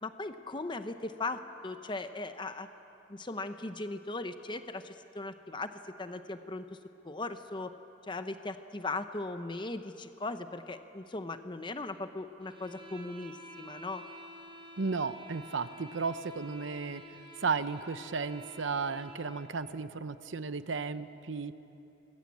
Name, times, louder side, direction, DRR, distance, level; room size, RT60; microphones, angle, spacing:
voice 1, 0.0-2.7 3.1-5.7 6.0-6.8 7.0-7.7 8.1-14.0, left 2 dB, 25° left, 9 dB, 0.8 m, -38 dB
sound 1, 12.4-19.5, equal, 30° right, 5.0 m, -50 dB
voice 2, 14.8-21.5, right 4 dB, 90° right, 12 dB, 0.8 m, -34 dB
25.5 x 21.0 x 8.5 m, 2.9 s
head